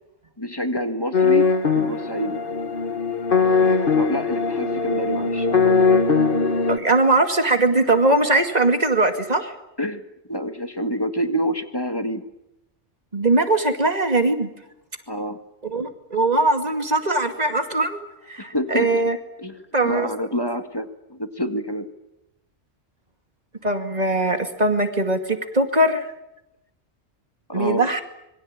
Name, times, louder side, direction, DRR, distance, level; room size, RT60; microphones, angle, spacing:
voice 1, 0.4-1.5 1.7-2.4 4.0-5.7 9.8-10.0 10.3-12.2 15.1-15.4 18.4-19.0 19.4-19.6 19.8-21.9 27.5-27.8, equal, 20° left, 8 dB, 1.8 m, -27 dB
sound 1, 1.1-6.8, left 4 dB, 50° left, 1.6 m, -20 dB
voice 2, 6.7-9.5 13.1-14.5 15.6-19.2 19.7-20.1 23.6-26.1 27.5-28.0, right 2 dB, 35° right, 7 dB, 2.4 m, -21 dB
26.0 x 22.5 x 8.9 m, 0.87 s
omnidirectional pair, 1.2 m